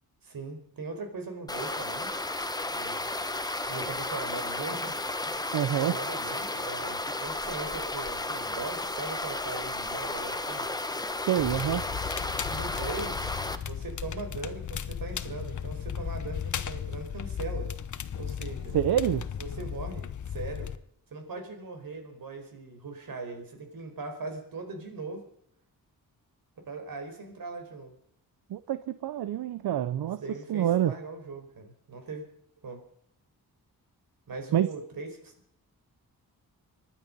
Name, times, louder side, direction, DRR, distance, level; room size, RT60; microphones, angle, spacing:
voice 1, 0.2-2.1 2.7-3.1 3.7-10.7 12.5-17.7 18.1-18.8 19.4-20.7 21.1-25.3 26.7-28.0 30.2-32.2 32.6-32.8 34.3-35.3, right 3 dB, 65° right, 5 dB, 4.8 m, -40 dB
sound 1, 1.5-13.6, left 2 dB, 10° left, 1.0 m, -33 dB
voice 2, 5.5-6.0 11.2-11.9 18.7-19.3 28.5-30.2 30.5-30.9 34.5-34.7, right 11 dB, 85° right, 14 dB, 0.7 m, -27 dB
Crackle, 11.4-20.8, left 8 dB, 55° left, 1.0 m, -36 dB
25.0 x 10.5 x 5.4 m, 0.68 s
wide cardioid pair, 110°, 37 cm